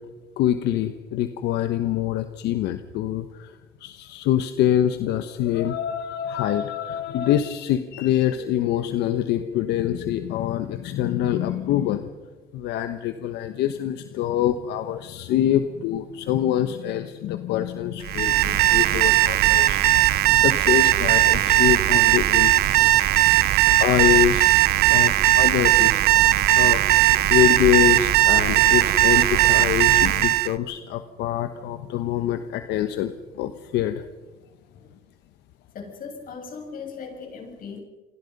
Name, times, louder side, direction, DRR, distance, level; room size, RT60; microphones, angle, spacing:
voice 1, 0.4-12.1 12.5-23.1 23.8-24.5 24.9-25.9 26.5-34.1, left 11 dB, 85° left, 9 dB, 1.2 m, -25 dB
Alarm, 18.0-30.5, right 16 dB, 70° right, 0.8 m, -18 dB
voice 2, 23.0-23.8 26.4-26.9 34.7-34.9 35.7-37.8, left 5 dB, 55° left, 3 dB, 7.3 m, -40 dB
28.5 x 23.5 x 5.4 m, 1.2 s
cardioid pair, 110°, 17 cm